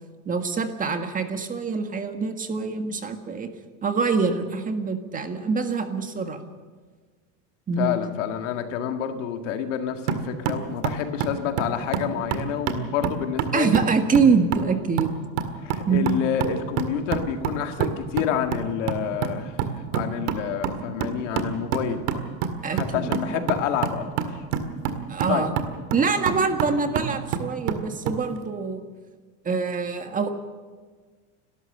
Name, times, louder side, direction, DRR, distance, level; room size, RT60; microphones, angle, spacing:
voice 1, 0.2-3.5 3.8-6.4 7.7-8.0 13.5-15.1 15.9-16.2 22.6-23.5 25.1-25.5 25.9-28.8 29.4-30.3, right 5 dB, 20° right, 7 dB, 1.6 m, -25 dB
voice 2, 7.8-13.8 15.6-19.6 19.9-22.1 22.7-24.1 25.3-25.5, left 9 dB, 90° left, 6 dB, 2.1 m, -28 dB
sound 1, 10.1-28.2, right 7 dB, 75° right, 2.0 m, -29 dB
30.0 x 13.0 x 6.8 m, 1.5 s
supercardioid pair, 135°, 36 cm